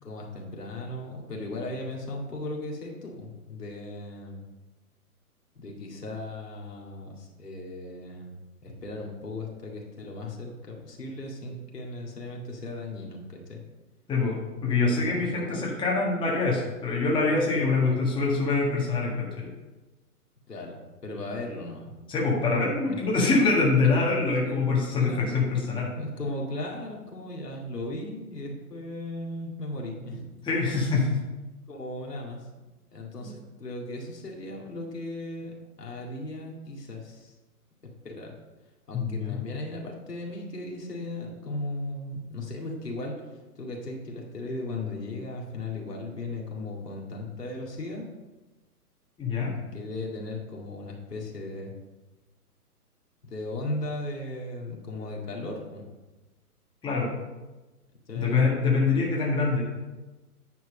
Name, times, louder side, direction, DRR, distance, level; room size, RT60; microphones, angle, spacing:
voice 1, 0.0-4.4 5.6-8.3 8.6-13.6 14.9-15.6 17.8-18.0 20.5-21.9 22.9-23.1 23.8-25.4 26.0-30.3 30.7-30.8 31.7-32.5 32.9-37.3 38.0-38.3 38.9-48.1 49.6-51.7 53.2-55.9 58.1-58.6, left 2 dB, 85° left, -1 dB, 2.1 m, -37 dB
voice 2, 14.1-19.5 22.1-25.9 30.4-31.0 33.2-33.3 38.9-39.4 49.2-49.6 56.8-57.1 58.1-59.6, left 3 dB, 10° left, -3 dB, 1.6 m, -25 dB
9.4 x 4.7 x 5.1 m, 1.1 s
figure-of-eight pair, 125°, 46 cm